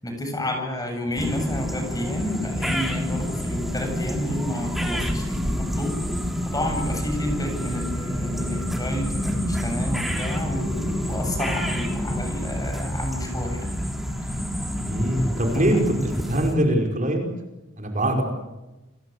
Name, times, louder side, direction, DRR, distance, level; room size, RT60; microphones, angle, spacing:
voice 1, 0.0-5.9 6.5-13.6, left 1 dB, 20° left, 4 dB, 7.7 m, -30 dB
sound 1, 1.1-16.5, equal, ahead, 3.6 m, -28 dB
voice 2, 14.8-17.3 17.8-18.2, right 1 dB, 40° right, 3 dB, 5.1 m, -22 dB
29.5 x 22.0 x 8.2 m, 1.1 s
head